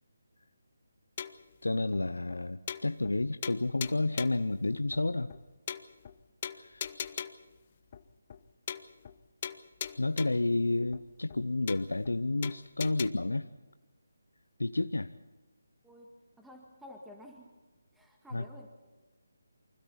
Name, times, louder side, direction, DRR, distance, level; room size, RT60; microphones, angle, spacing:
sound 1, 1.2-1.5 1.9-2.0 2.3-2.4 2.7-3.2 3.4-4.5 4.9-5.0 5.3-5.4 5.7-6.1 6.4-7.5 7.9-8.0 8.3-8.4 8.7-9.2 9.4-10.5 10.9-11.0 11.3-11.4 11.7-12.1 12.4-13.1, left 8 dB, 35° left, 1.0 m, -40 dB
voice 1, 1.6-5.3 6.6-6.9 10.0-13.5 14.6-15.1 18.3-18.4, left 2 dB, 85° left, 11 dB, 0.8 m, -30 dB
voice 2, 15.8-17.5 17.9-18.7, left 1 dB, 5° right, 0 dB, 2.0 m, -51 dB
29.0 x 25.0 x 4.3 m, 1.2 s
figure-of-eight pair, 155°, 0 cm